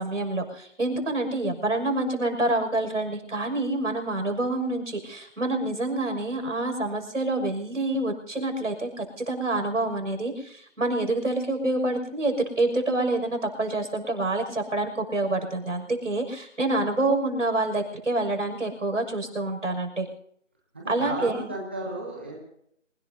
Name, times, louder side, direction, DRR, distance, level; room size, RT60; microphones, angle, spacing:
voice 1, 0.0-20.1 20.9-21.4, right 2 dB, 75° right, 4 dB, 6.2 m, -27 dB
voice 2, 20.7-22.4, right 1 dB, 10° right, -1 dB, 0.9 m, -34 dB
27.0 x 18.5 x 2.8 m, 0.68 s
figure-of-eight pair, 165°, 38 cm